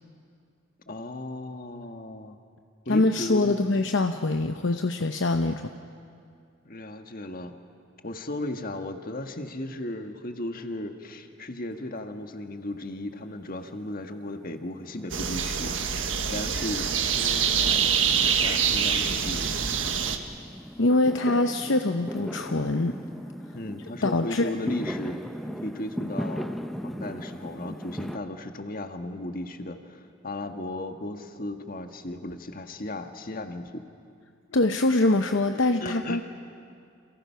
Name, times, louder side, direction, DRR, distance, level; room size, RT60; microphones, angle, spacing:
voice 1, 0.9-2.4 2.8-3.6 6.6-7.5 8.0-15.8 16.3-19.7 23.5-25.2 25.6-26.5 26.8-33.9 35.5-36.2, left 1 dB, 45° left, 6 dB, 1.5 m, -36 dB
voice 2, 2.9-5.7 20.8-22.9 24.0-24.5 34.5-36.2, left 2 dB, 65° left, 6 dB, 0.8 m, -24 dB
Fireworks, 11.7-12.6 12.9-28.2, equal, ahead, 0.9 m, -39 dB
sound 1, 15.1-20.2, right 7 dB, 70° right, 1.5 m, -25 dB
29.5 x 28.0 x 5.8 m, 2.3 s
head